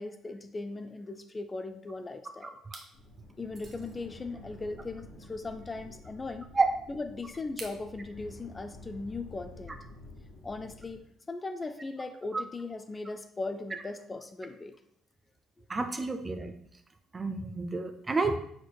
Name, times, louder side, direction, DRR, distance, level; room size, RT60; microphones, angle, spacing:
voice 1, 0.0-2.6 3.4-6.5 6.9-9.8 10.4-14.8, left 3 dB, 30° left, 8 dB, 0.4 m, -38 dB
sound 1, 1.8-2.2 2.6-2.9 3.5-4.0 5.5-5.6 7.6-7.9, right 3 dB, 45° right, 0.9 m, -47 dB
sound 2, 2.9-11.0, left 2 dB, 60° left, 1.4 m, -50 dB
voice 2, 15.7-16.5 17.1-18.4, right 3 dB, 30° right, 7 dB, 0.5 m, -29 dB
4.5 x 4.3 x 2.2 m, 0.69 s
hypercardioid pair, 55°, 0 cm